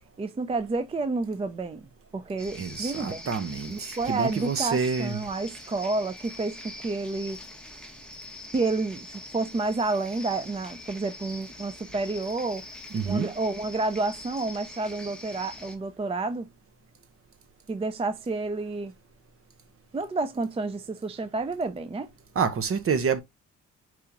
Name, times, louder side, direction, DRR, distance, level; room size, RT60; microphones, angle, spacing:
voice 1, 0.2-3.2 3.7-7.4 8.5-12.6 13.0-16.5 17.7-18.9 19.9-22.1, right 3 dB, 20° right, 0.5 m, -30 dB
sound 1, 2.4-15.8, left 2 dB, 5° left, 1.1 m, -44 dB
voice 2, 2.5-5.3 12.9-13.3 22.3-23.2, right 5 dB, 45° right, 1.1 m, -28 dB
4.8 x 2.8 x 3.6 m
cardioid pair, 90°, 30 cm